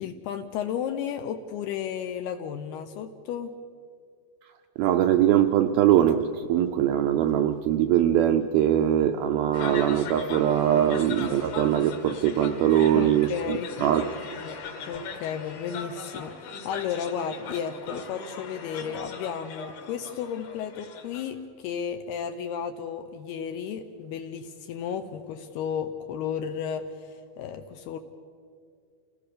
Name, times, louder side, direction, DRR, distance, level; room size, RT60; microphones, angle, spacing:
voice 1, 0.0-3.6 10.7-11.1 12.7-13.9 14.4-14.6 14.9-28.0, left 8 dB, 75° left, 7 dB, 2.6 m, -33 dB
voice 2, 4.8-14.1, right 11 dB, 80° right, 6 dB, 2.2 m, -22 dB
sound 1, 9.5-21.2, left 4 dB, 55° left, 3.1 m, -39 dB
28.0 x 17.5 x 6.7 m, 2.3 s
omnidirectional pair, 5.0 m